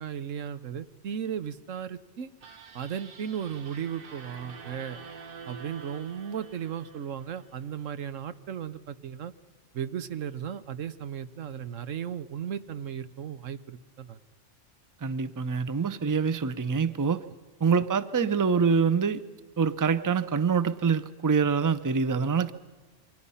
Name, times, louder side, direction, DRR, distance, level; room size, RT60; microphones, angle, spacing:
voice 1, 0.0-2.3 2.7-5.0 5.5-9.3 9.7-14.2, right 8 dB, 90° right, 12 dB, 1.3 m, -36 dB
sound 1, 2.4-7.7, right 5 dB, 50° right, 1.2 m, -47 dB
voice 2, 15.0-17.2 17.6-19.2 19.6-22.5, right 5 dB, 25° right, 14 dB, 0.5 m, -25 dB
28.0 x 24.0 x 5.7 m, 1.4 s
omnidirectional pair, 1.3 m